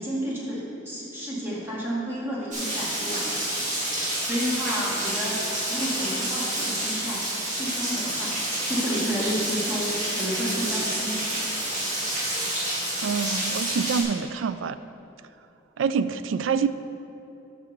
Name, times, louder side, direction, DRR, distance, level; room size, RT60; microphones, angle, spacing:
voice 1, 0.0-3.3 4.2-5.4 5.7-7.2 7.5-8.4 8.7-11.5, equal, 10° right, -7 dB, 2.0 m, -31 dB
Rain, 2.5-14.0, right 1 dB, 40° right, 2.0 m, -28 dB
voice 2, 13.0-14.8 15.8-16.7, right 6 dB, 75° right, 13 dB, 0.3 m, -26 dB
6.6 x 6.1 x 6.5 m, 2.9 s
head